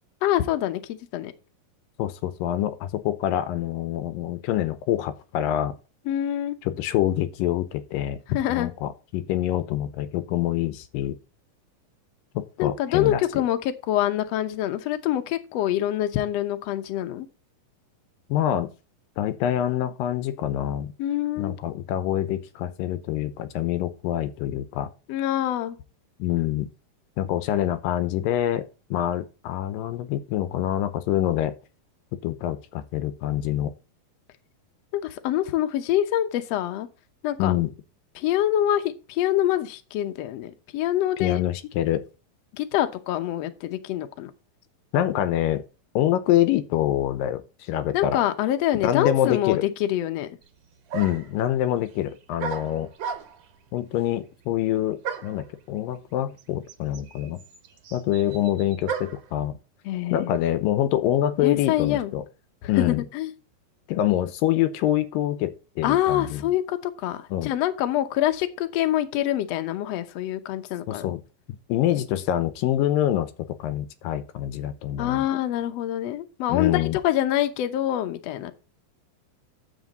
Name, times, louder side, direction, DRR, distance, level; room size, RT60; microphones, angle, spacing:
voice 1, 0.2-1.3 6.1-6.6 8.3-8.7 12.6-17.3 21.0-21.5 25.1-25.8 34.9-36.9 37.2-37.5 38.2-41.4 42.5-44.3 47.9-50.3 59.8-60.4 61.4-62.1 62.8-63.3 65.8-71.1 75.0-78.5, left 12 dB, 70° left, 1.7 m, -25 dB
voice 2, 2.0-5.8 6.6-8.2 8.5-11.2 12.3-13.4 18.3-18.7 19.2-20.9 21.4-24.9 26.2-26.7 27.2-28.6 28.9-31.5 32.2-33.7 37.4-37.7 41.2-42.0 44.9-45.6 46.0-48.2 48.7-49.6 50.9-52.9 53.7-57.4 57.9-59.6 60.1-62.2 62.7-63.0 63.9-66.4 67.3-67.5 70.9-71.2 71.7-75.3 76.5-77.0, left 12 dB, 90° left, 2.5 m, -25 dB
sound 1, 50.4-50.5 50.9-51.4 52.4-53.5 55.0-55.4 56.4-56.5 56.7-59.3, right 7 dB, 60° right, 1.8 m, -34 dB
9.4 x 7.5 x 4.1 m
omnidirectional pair, 3.9 m